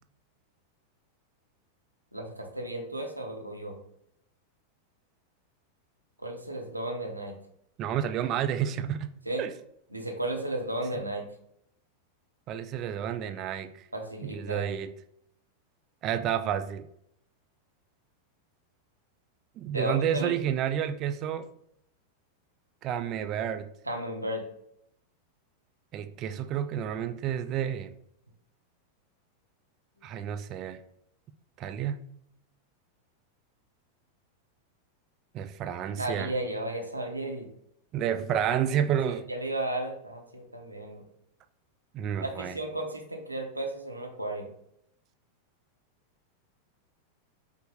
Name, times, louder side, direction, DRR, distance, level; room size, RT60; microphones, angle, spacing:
voice 1, 2.1-3.8 6.2-7.3 9.3-9.4 9.9-11.3 13.9-14.7 19.7-20.4 23.9-24.4 36.0-37.5 39.1-41.0 42.2-44.5, right 1 dB, 85° right, 2 dB, 0.6 m, -34 dB
voice 2, 7.8-9.1 9.4-9.5 12.5-13.7 14.2-14.9 16.0-16.9 19.6-21.5 22.8-23.6 25.9-28.0 30.0-30.8 31.6-32.0 35.3-36.3 37.9-39.3 41.9-42.6, right 9 dB, 35° right, 9 dB, 0.3 m, -30 dB
5.2 x 2.1 x 3.5 m, 0.72 s
figure-of-eight pair, 90°, 0 cm